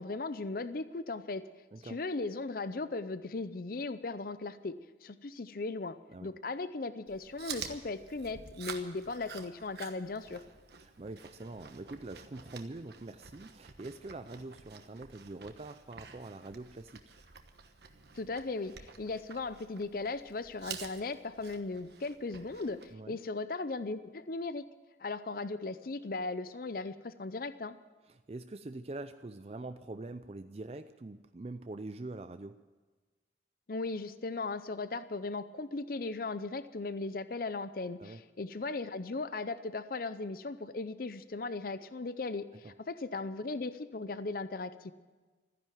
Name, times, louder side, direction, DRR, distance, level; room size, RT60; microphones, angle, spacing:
voice 1, 0.0-1.4 1.8-4.7 5.0-10.4 18.2-24.6 25.0-27.7 33.7-44.9, left 3 dB, 50° left, 13 dB, 0.6 m, -37 dB
Chewing mastication, 7.1-22.9, right 7 dB, 65° right, 1.2 m, -49 dB
voice 2, 10.8-17.2 22.9-23.2 28.1-32.6 38.0-38.2 42.6-42.7, right 2 dB, 35° right, 10 dB, 0.4 m, -44 dB
14.5 x 10.5 x 9.2 m, 1.3 s
head